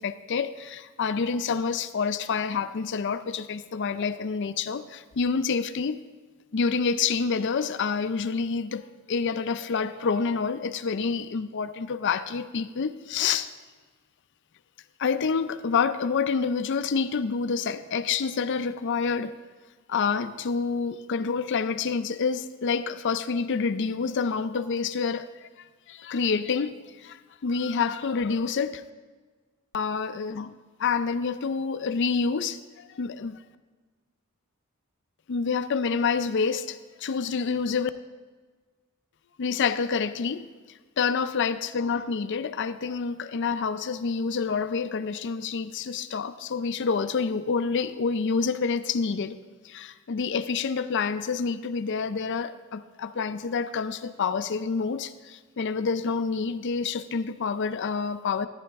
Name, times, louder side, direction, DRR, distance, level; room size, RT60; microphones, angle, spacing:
voice 1, 0.0-6.0 6.5-13.5 15.0-19.3 19.9-25.5 25.9-28.8 29.7-30.5 30.8-33.4 35.3-37.9 39.4-40.5 41.0-49.4 49.6-58.5, left 5 dB, 55° left, 0.5 m, -28 dB
14.0 x 9.9 x 3.5 m
head